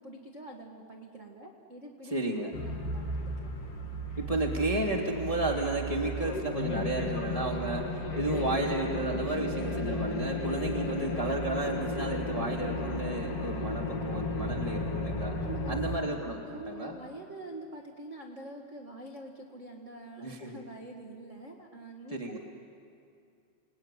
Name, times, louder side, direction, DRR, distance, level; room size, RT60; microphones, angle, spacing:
voice 1, 0.0-3.5 15.4-15.8 16.4-22.4, right 2 dB, 50° right, 0 dB, 0.9 m, -45 dB
voice 2, 2.0-2.5 4.2-7.9 8.1-15.3 15.7-17.0 20.2-20.6 22.1-22.4, right 1 dB, 15° left, 1 dB, 1.4 m, -32 dB
sound 1, 2.5-16.0, left 1 dB, 50° left, 2.2 m, -34 dB
28.5 x 19.5 x 9.9 m, 2.5 s
omnidirectional pair, 4.6 m